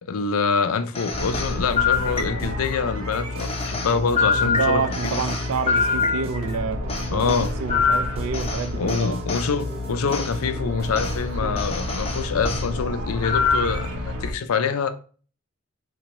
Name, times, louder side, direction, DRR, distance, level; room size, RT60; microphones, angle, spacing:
voice 1, 0.0-5.2 7.1-7.5 8.8-14.9, left 5 dB, 85° left, 0.5 m, -25 dB
sound 1, 0.9-2.7 3.4-6.6 6.9-9.5 10.1-10.3 10.9-11.2 11.6-12.7 13.2-13.8, left 5 dB, 30° left, 0.6 m, -25 dB
sound 2, 1.1-14.3, left 1 dB, 85° right, 1.0 m, -31 dB
sound 3, 1.7-11.2, equal, 30° right, 0.7 m, -40 dB
voice 2, 4.4-6.8 7.1-9.2 11.4-11.6, right 5 dB, 70° right, 0.4 m, -28 dB
4.1 x 2.6 x 3.0 m
head